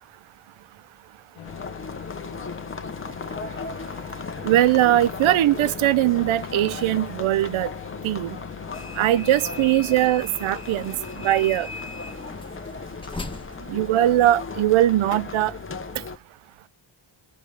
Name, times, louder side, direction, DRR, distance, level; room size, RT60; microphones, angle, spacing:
sound 1, 1.4-9.8, left 10 dB, 80° left, 0.8 m, -42 dB
sound 2, 1.4-16.2, left 4 dB, 25° left, 0.6 m, -36 dB
voice 1, 4.4-7.7 8.0-8.4 9.0-10.9 11.2-11.7 13.7-15.5, right 13 dB, 70° right, 0.6 m, -20 dB
sound 3, 8.7-14.6, left 3 dB, 10° left, 1.0 m, -39 dB
21.5 x 11.5 x 3.2 m
wide cardioid pair, 110°, 50 cm